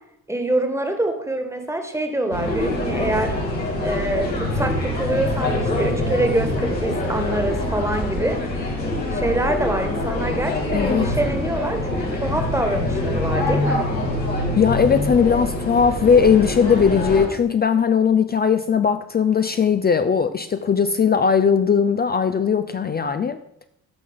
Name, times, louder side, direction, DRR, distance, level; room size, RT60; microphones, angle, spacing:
voice 1, 0.3-3.3 3.8-8.4 9.1-13.9, right 1 dB, 5° right, 6 dB, 1.5 m, -25 dB
sound 1, 2.3-17.3, left 1 dB, 90° left, 1.3 m, -24 dB
voice 2, 10.7-11.1 14.6-23.4, left 6 dB, 20° left, 9 dB, 0.4 m, -18 dB
14.0 x 6.1 x 3.6 m, 0.74 s
figure-of-eight pair, 40°, 49 cm